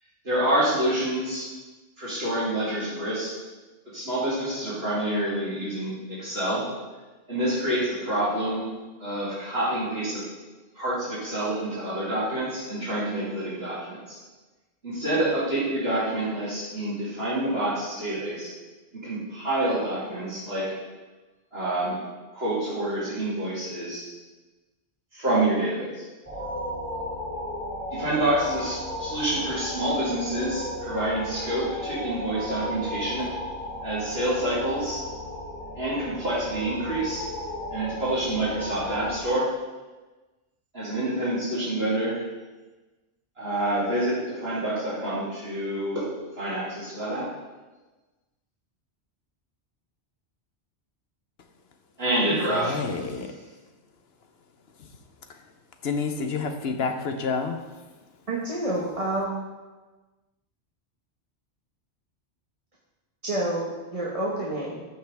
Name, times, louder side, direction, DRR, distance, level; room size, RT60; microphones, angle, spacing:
voice 1, 0.2-1.5 2.0-3.3 3.9-6.7 7.3-8.7 9.0-10.3 10.7-14.2 14.8-18.5 19.0-20.7 21.5-22.0 22.3-24.1 25.1-26.0 27.9-33.3 33.8-35.0 35.8-37.2 37.7-39.5 40.7-42.2 43.4-46.1 46.4-47.3 52.0-53.2, right 1 dB, 60° right, -10 dB, 3.0 m, -27 dB
sound 1, 26.2-39.2, equal, 10° left, 2.5 m, -35 dB
voice 2, 52.3-53.3 55.8-57.6, left 5 dB, 65° left, 6 dB, 1.0 m, -29 dB
voice 3, 58.3-59.4 63.2-64.8, right 1 dB, 30° right, -5 dB, 1.2 m, -28 dB
14.0 x 5.6 x 3.4 m, 1.2 s
omnidirectional pair, 1.1 m